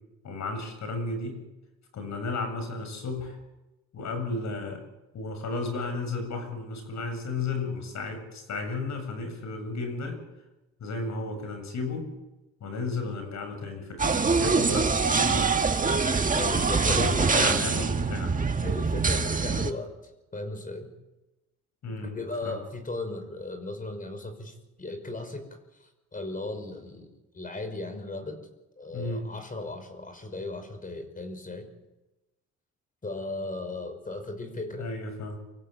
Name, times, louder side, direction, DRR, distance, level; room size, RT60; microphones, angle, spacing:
voice 1, 0.2-1.4 1.9-3.4 3.9-4.8 5.1-10.2 10.8-12.1 12.6-16.0 16.8-18.3 21.8-22.6 28.9-29.3 34.8-35.4, left 3 dB, 65° left, 6 dB, 7.7 m, -33 dB
sound 1, 14.0-19.7, right 4 dB, 25° right, 1.7 m, -24 dB
voice 2, 16.3-17.4 18.6-19.9 20.3-20.9 22.0-25.5 25.8-27.1 27.3-28.4 28.8-31.7 33.0-34.9, left 2 dB, 25° left, 7 dB, 5.7 m, -36 dB
25.5 x 15.5 x 8.5 m, 1.0 s
cardioid pair, 90°, 30 cm